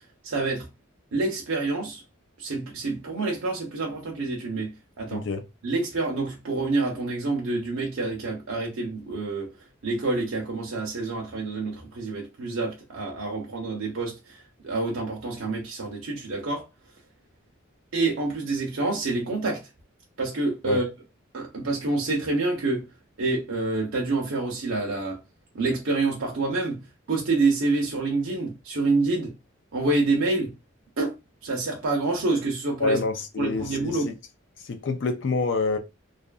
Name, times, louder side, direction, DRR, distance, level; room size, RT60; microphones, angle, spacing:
voice 1, 0.2-0.7 1.1-2.0 2.4-5.2 5.6-9.5 9.8-16.6 17.9-19.6 20.2-20.9 21.3-22.9 23.2-25.2 25.5-26.8 27.1-29.3 29.7-30.5 31.0-31.1 31.4-33.0 33.4-34.1, right 3 dB, 80° right, 0.7 m, -27 dB
voice 2, 5.1-5.4 20.6-20.8 32.8-34.1 34.6-35.8, left 4 dB, 60° left, 0.4 m, -27 dB
2.6 x 2.4 x 2.3 m
head